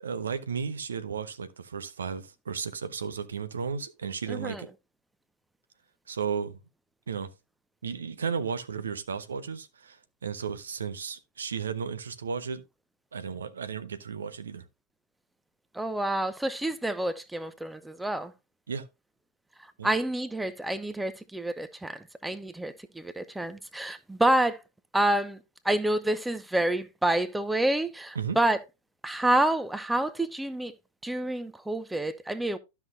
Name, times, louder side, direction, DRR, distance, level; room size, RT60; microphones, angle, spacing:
voice 1, 0.0-4.7 6.1-6.6 7.1-7.3 7.8-12.6 13.1-14.6 18.7-18.9 19.8-19.9 28.1-28.4, right 6 dB, 70° right, 0.7 m, -34 dB
voice 2, 4.3-4.6 15.7-18.3 19.8-24.6 24.9-25.4 25.6-28.6 29.0-30.7 31.0-32.6, right 1 dB, 5° right, 0.6 m, -28 dB
12.5 x 5.9 x 2.6 m
figure-of-eight pair, 90°, 0 cm